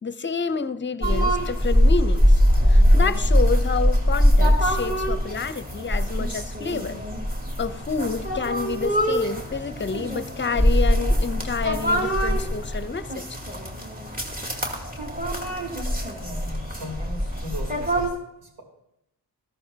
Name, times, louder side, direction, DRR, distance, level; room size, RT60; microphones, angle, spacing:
voice 1, 0.0-2.4 2.7-7.0 7.6-13.3, left 5 dB, 30° left, 0.7 m, -29 dB
sound 1, 1.0-18.1, equal, 20° right, 2.7 m, -22 dB
voice 2, 16.1-18.6, left 1 dB, 80° right, 3.4 m, -38 dB
14.0 x 13.0 x 2.8 m
cardioid pair, 65°, 40 cm